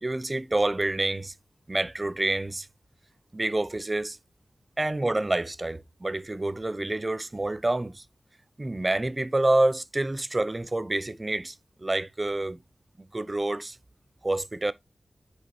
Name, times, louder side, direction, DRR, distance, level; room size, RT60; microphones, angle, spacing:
voice 1, 0.0-1.3 1.7-2.7 3.3-4.2 4.8-8.0 8.6-11.5 11.8-12.6 13.1-13.8 14.2-14.7, right 2 dB, 30° right, 0.6 m, -27 dB
8.0 x 5.0 x 3.1 m
cardioid pair, 50°, 0 cm